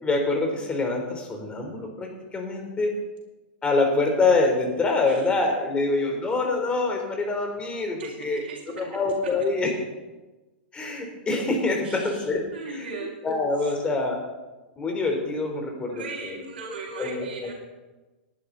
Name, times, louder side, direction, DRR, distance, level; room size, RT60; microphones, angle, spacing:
voice 1, 0.0-3.0 3.6-8.4 8.8-9.7 10.7-12.9 13.2-14.2 14.8-16.5 16.9-17.5, left 3 dB, 20° left, 2 dB, 3.7 m, -25 dB
voice 2, 8.0-8.9 11.8-12.3 12.5-13.1 15.9-17.5, right 4 dB, 80° right, -5 dB, 3.8 m, -38 dB
19.0 x 11.5 x 4.1 m, 1.1 s
hypercardioid pair, 125°, 5 cm